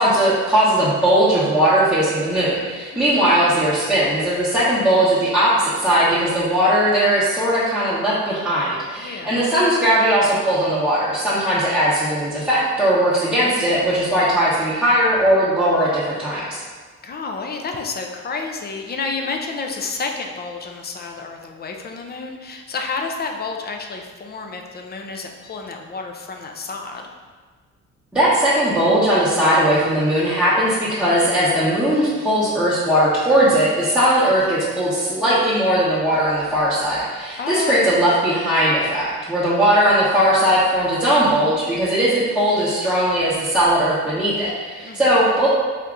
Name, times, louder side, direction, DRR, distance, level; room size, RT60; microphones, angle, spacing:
voice 1, 0.0-16.6 28.1-45.5, right 1 dB, 5° right, -12 dB, 1.0 m, -18 dB
voice 2, 9.0-9.4 17.0-27.1 37.4-37.9 44.8-45.0, left 4 dB, 35° left, 3 dB, 0.5 m, -30 dB
3.5 x 2.8 x 3.6 m, 1.5 s
cardioid pair, 90°, 30 cm